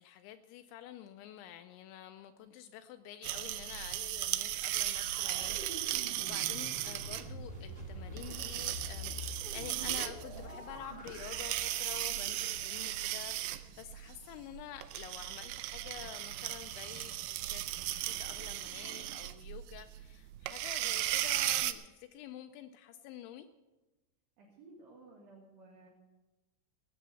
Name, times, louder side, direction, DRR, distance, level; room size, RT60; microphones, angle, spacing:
voice 1, 0.0-23.5, left 11 dB, 80° left, 9 dB, 2.7 m, -49 dB
sound 1, 3.2-21.7, right 15 dB, 85° right, 2.5 m, -37 dB
sound 2, 4.5-14.6 15.2-15.3, left 1 dB, 30° right, 0.8 m, -47 dB
voice 2, 24.4-25.9, right 2 dB, 60° right, -5 dB, 4.0 m, -56 dB
18.5 x 8.6 x 7.0 m, 1.1 s
omnidirectional pair, 5.7 m